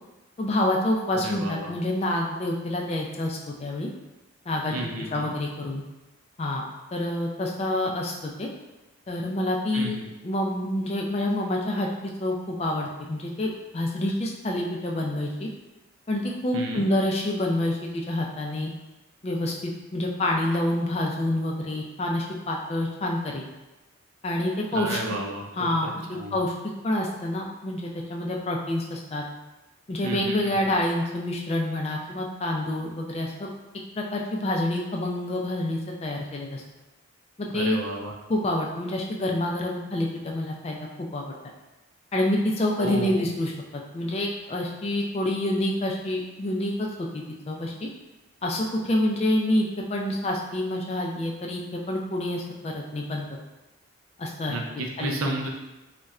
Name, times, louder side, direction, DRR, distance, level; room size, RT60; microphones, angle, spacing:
voice 1, 0.4-3.9 4.5-5.8 6.4-6.6 6.9-8.5 9.1-10.0 10.2-15.5 16.1-18.7 19.2-23.4 24.2-25.0 25.5-26.5 26.8-29.2 29.9-33.5 34.0-36.6 37.4-37.8 38.3-41.3 42.1-46.9 47.1-47.9 48.4-53.4 54.2-54.6 55.0-55.1, left 1 dB, 30° left, -1 dB, 0.3 m, -27 dB
voice 2, 1.1-1.7 4.7-5.3 9.7-10.1 16.5-16.9 24.7-26.4 30.0-30.7 37.5-38.1 42.8-43.2 54.5-55.5, right 2 dB, 75° right, 1 dB, 0.5 m, -32 dB
4.1 x 2.1 x 2.4 m, 1.1 s
head